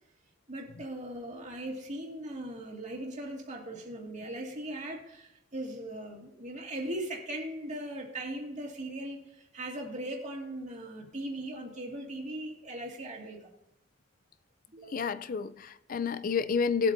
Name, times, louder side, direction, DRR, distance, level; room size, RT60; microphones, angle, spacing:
voice 1, 0.5-13.5 14.7-15.1, right 1 dB, 40° right, 2.1 m, -39 dB
voice 2, 14.9-16.9, left 5 dB, 45° left, 0.5 m, -30 dB
19.5 x 7.9 x 2.7 m
head